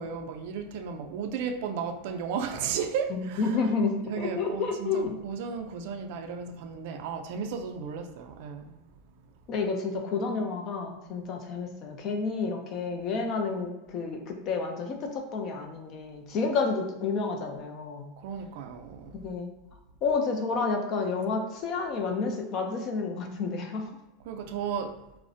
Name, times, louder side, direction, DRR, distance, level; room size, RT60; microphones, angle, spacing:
voice 1, 0.0-3.6 4.1-8.7 18.2-19.2 24.3-25.0, right 6 dB, 65° right, 6 dB, 0.3 m, -34 dB
voice 2, 3.1-5.2 9.5-18.1 19.1-19.5 20.0-23.8, left 4 dB, 40° left, 3 dB, 0.4 m, -30 dB
2.4 x 2.0 x 2.5 m, 0.98 s
supercardioid pair, 135°, 0 cm